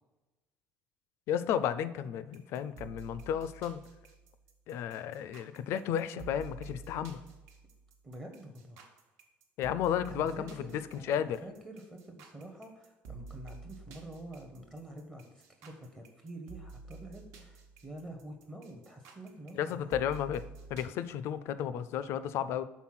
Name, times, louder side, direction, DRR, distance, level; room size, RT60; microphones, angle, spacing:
voice 1, 1.3-3.8 4.7-7.2 9.6-10.8 11.1-11.4 19.5-20.4 20.7-22.6, left 9 dB, 55° left, 14 dB, 0.4 m, -33 dB
sound 1, 2.3-20.9, right 4 dB, 70° right, 1.1 m, -50 dB
voice 2, 8.0-8.8 10.1-20.0, right 1 dB, 15° right, 3 dB, 0.6 m, -47 dB
6.1 x 4.0 x 5.7 m, 1.1 s
cardioid pair, 175°, 5 cm